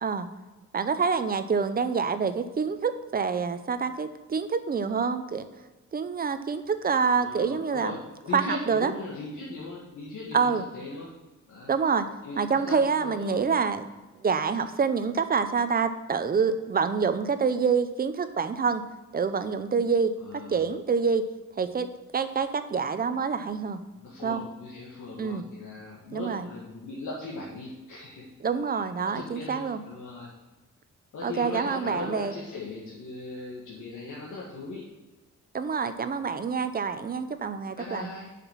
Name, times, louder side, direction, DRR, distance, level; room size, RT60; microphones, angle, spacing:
voice 1, 0.7-5.5 5.9-7.9 8.3-8.9 10.3-10.6 11.7-12.1 12.4-13.8 14.2-18.8 19.1-20.1 20.5-21.2 21.6-21.9 22.1-23.8 24.2-24.4 25.2-25.4 26.1-26.5 28.4-29.8 31.2-32.3 35.5-38.1, right 5 dB, 30° right, 10 dB, 0.6 m, -26 dB
voice 2, 7.1-8.0 8.2-11.1 11.5-11.7 12.2-13.4 20.2-20.6 23.9-28.3 29.0-30.3 31.1-34.8 37.8-38.3, left 3 dB, 75° left, -4 dB, 1.8 m, -39 dB
6.9 x 6.0 x 7.3 m, 1.2 s
wide cardioid pair, 175°, 31 cm